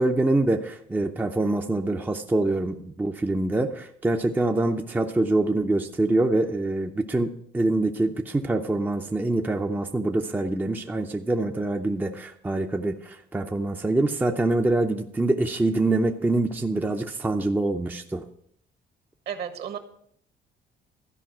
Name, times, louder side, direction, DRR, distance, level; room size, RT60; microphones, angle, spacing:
voice 1, 0.0-18.3, right 2 dB, 10° right, 4 dB, 0.6 m, -25 dB
voice 2, 19.2-19.8, right 8 dB, 60° right, 8 dB, 1.5 m, -32 dB
13.0 x 5.2 x 7.5 m, 0.66 s
cardioid pair, 125°, 19 cm